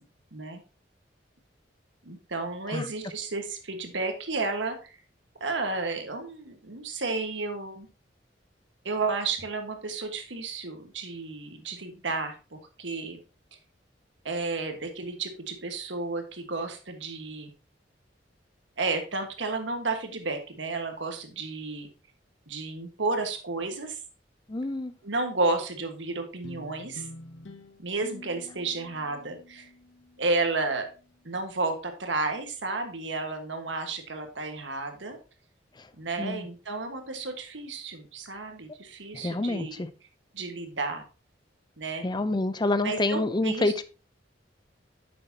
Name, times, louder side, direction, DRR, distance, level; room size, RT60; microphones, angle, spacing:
voice 1, 0.3-0.6 2.0-5.0 5.4-7.9 8.8-13.2 14.2-17.5 18.8-21.9 22.5-24.0 25.0-27.1 27.8-29.7 30.2-30.9 31.2-35.2 36.0-39.8 40.3-41.0 41.8-42.1 42.8-43.7, right 3 dB, 85° right, 5 dB, 1.6 m, -32 dB
voice 2, 24.5-24.9 35.8-35.9 36.2-36.5 39.1-39.9 42.0-43.8, left 2 dB, 25° left, 13 dB, 0.5 m, -28 dB
sound 1, 26.4-31.1, left 2 dB, 85° left, 0.9 m, -48 dB
9.7 x 6.9 x 2.8 m, 0.34 s
head